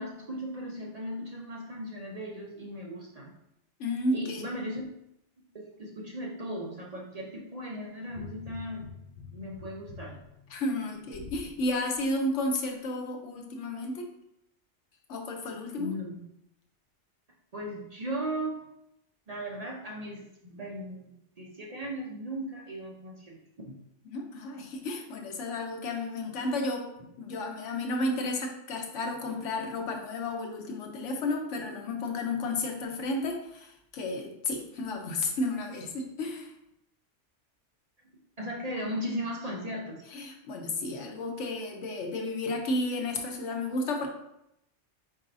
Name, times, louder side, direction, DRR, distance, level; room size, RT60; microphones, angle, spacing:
voice 1, 0.0-3.3 4.1-4.9 5.5-8.9 9.3-10.2 15.8-16.2 17.5-18.7 19.3-23.4 23.6-23.8 38.4-40.0, equal, 40° right, -2 dB, 0.7 m, -37 dB
voice 2, 3.8-4.5 10.5-14.1 15.1-15.9 24.1-26.9 27.2-36.5 40.1-44.1, left 2 dB, 85° left, 2 dB, 1.1 m, -32 dB
sound 1, 8.1-11.5 12.0-12.1, left 4 dB, 55° left, 0.6 m, -46 dB
4.6 x 4.2 x 2.6 m, 0.82 s
omnidirectional pair, 1.2 m